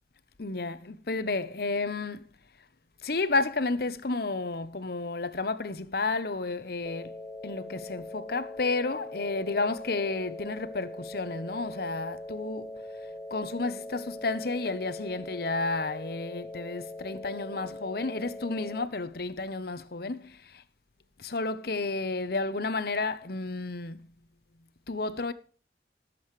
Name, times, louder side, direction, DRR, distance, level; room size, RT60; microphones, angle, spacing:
voice 1, 0.4-2.3 3.0-12.8 13.3-20.6 21.2-24.1 24.9-25.3, left 3 dB, 60° left, 0.9 m, -31 dB
Major Triad Shift, 6.9-18.9, left 1 dB, 10° left, 0.6 m, -42 dB
19.5 x 7.8 x 3.2 m
head